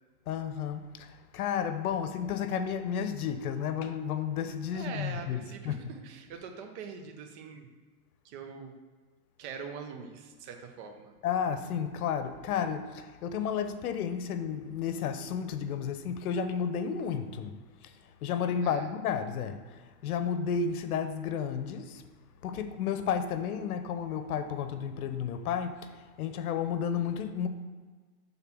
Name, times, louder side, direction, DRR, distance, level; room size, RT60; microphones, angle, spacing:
voice 1, 0.3-5.4 5.6-5.8 11.2-17.6 17.8-17.9 18.2-22.0 22.4-27.5, left 7 dB, 70° left, 0.8 m, -32 dB
voice 2, 4.7-7.7 8.2-8.7 9.4-11.1 18.6-18.9, right 6 dB, 45° right, 1.1 m, -43 dB
5.7 x 3.8 x 6.0 m
hypercardioid pair, 135°, 46 cm